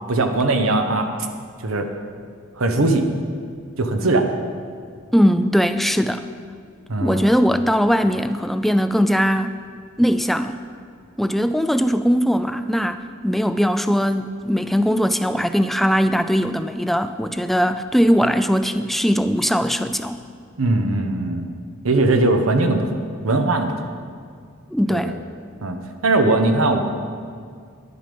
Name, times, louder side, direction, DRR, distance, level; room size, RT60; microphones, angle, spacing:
voice 1, 0.1-1.1 1.6-1.9 2.6-3.0 3.8-4.3 6.9-7.3 20.6-21.5 21.8-22.9 23.2-23.7 24.9-25.1 25.6-25.8 26.0-26.8, right 2 dB, 80° right, 5 dB, 1.0 m, -19 dB
voice 2, 5.1-6.2 7.0-9.6 10.0-10.6 11.2-20.2 24.7-25.1, equal, ahead, 10 dB, 0.3 m, -20 dB
11.0 x 9.7 x 5.2 m, 2.1 s
head